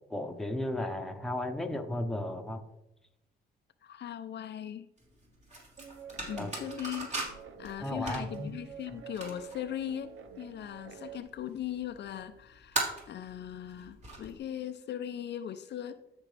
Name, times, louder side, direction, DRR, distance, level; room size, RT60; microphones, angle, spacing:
voice 1, 0.1-2.6 6.4-6.5 7.8-8.5, left 1 dB, ahead, 4 dB, 1.1 m, -34 dB
voice 2, 3.8-4.9 6.3-7.1 7.6-16.2, left 10 dB, 60° left, 9 dB, 0.6 m, -39 dB
sound 1, 5.0-14.4, right 2 dB, 35° right, 3.1 m, -41 dB
Guitar, 5.8-11.2, right 8 dB, 85° right, 0.7 m, -49 dB
13.0 x 5.2 x 3.4 m, 0.89 s
cardioid pair, 90°, 20 cm